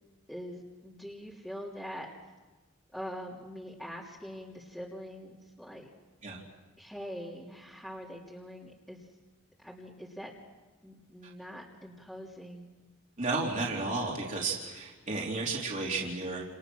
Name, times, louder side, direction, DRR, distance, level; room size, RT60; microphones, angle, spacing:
voice 1, 0.3-2.1 2.9-5.9 6.8-9.1 9.6-10.3 10.8-12.7, equal, ahead, -5 dB, 3.1 m, -43 dB
voice 2, 13.2-16.4, right 3 dB, 35° right, -3 dB, 3.7 m, -32 dB
30.0 x 29.0 x 6.4 m, 1.2 s
head